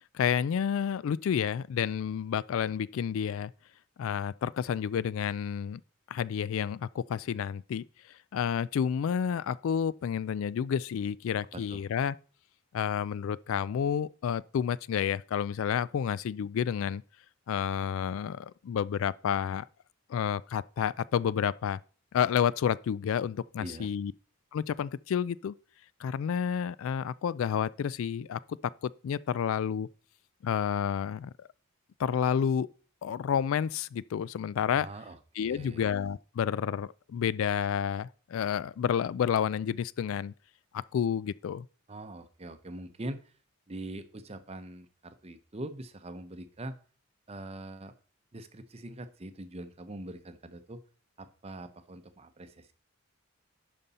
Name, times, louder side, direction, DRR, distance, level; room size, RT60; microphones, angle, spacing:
voice 1, 0.1-3.5 4.0-5.8 6.1-7.8 8.3-12.1 12.7-17.0 17.5-19.7 20.1-21.8 22.1-24.1 24.5-25.6 26.0-29.9 30.4-31.5 32.0-32.7 33.0-34.9 35.4-40.3 40.9-41.7, left 8 dB, 65° left, 0.3 m, -30 dB
voice 2, 11.5-11.8 23.6-23.9 34.8-35.8 41.9-43.3 43.7-46.8 47.3-47.9 48.3-50.8 51.2-52.7, right 1 dB, 30° right, 0.7 m, -43 dB
11.0 x 5.3 x 4.1 m
head